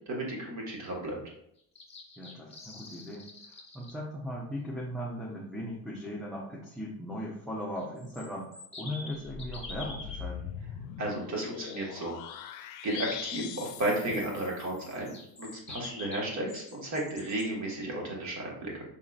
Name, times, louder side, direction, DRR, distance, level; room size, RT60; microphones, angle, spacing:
voice 1, 0.1-1.2 11.0-12.1 12.8-18.8, right 1 dB, 50° right, -1 dB, 1.8 m, -33 dB
sound 1, 1.6-3.9 7.8-10.2 14.8-17.4, left 3 dB, 15° left, 1.2 m, -46 dB
voice 2, 2.2-3.3 3.7-8.5 8.8-10.5, equal, ahead, -4 dB, 0.8 m, -38 dB
sound 2, 9.2-15.0, left 8 dB, 80° left, 0.5 m, -41 dB
5.3 x 3.7 x 2.5 m, 0.73 s
supercardioid pair, 95°, 37 cm